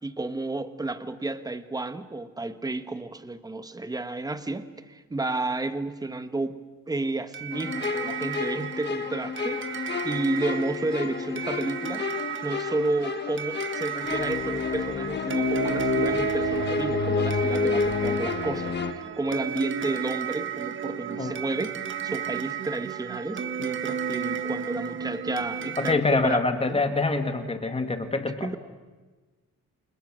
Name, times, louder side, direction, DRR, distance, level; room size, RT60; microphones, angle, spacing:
voice 1, 0.0-6.6 6.9-12.1 12.4-26.8 28.4-28.6, right 2 dB, 10° right, 11 dB, 1.1 m, -31 dB
sound 1, 7.3-25.9, right 9 dB, 40° right, 1.4 m, -33 dB
sound 2, 7.5-18.9, left 6 dB, 35° left, 1.2 m, -30 dB
voice 2, 25.8-28.6, left 3 dB, 20° left, 8 dB, 1.9 m, -25 dB
29.5 x 28.0 x 6.3 m, 1.3 s
wide cardioid pair, 180°, 30 cm